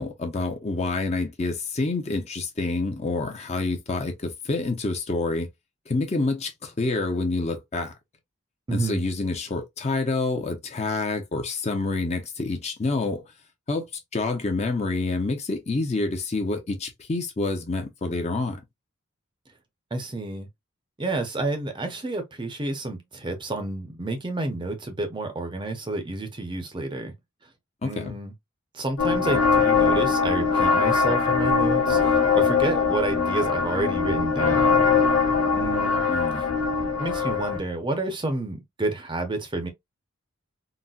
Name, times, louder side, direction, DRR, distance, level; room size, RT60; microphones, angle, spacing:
voice 1, 0.0-5.5 5.9-7.9 8.7-13.2 13.7-13.9 14.1-18.6 27.8-28.2 36.1-36.4, left 3 dB, 30° left, 0.6 m, -27 dB
voice 2, 8.7-9.0 19.9-20.5 21.0-27.1 27.8-28.3 28.7-34.9 35.6-36.0 36.4-36.5 37.0-39.7, right 2 dB, 20° right, 0.6 m, -30 dB
sound 1, 29.0-37.6, left 5 dB, 80° left, 1.2 m, -22 dB
3.9 x 2.1 x 2.3 m
head